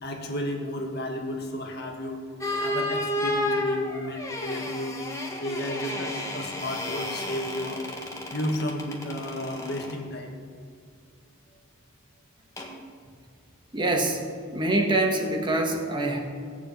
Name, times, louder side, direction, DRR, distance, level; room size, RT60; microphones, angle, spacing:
voice 1, 0.0-2.2 2.6-5.0 5.4-7.8 8.3-10.3, left 1 dB, 50° left, 2 dB, 1.9 m, -33 dB
sound 1, 2.4-10.0 12.6-12.8, left 1 dB, 15° left, 1.6 m, -32 dB
voice 2, 13.7-14.2 14.5-16.2, right 2 dB, 20° right, 2 dB, 1.5 m, -24 dB
17.0 x 7.4 x 8.5 m, 2.2 s
head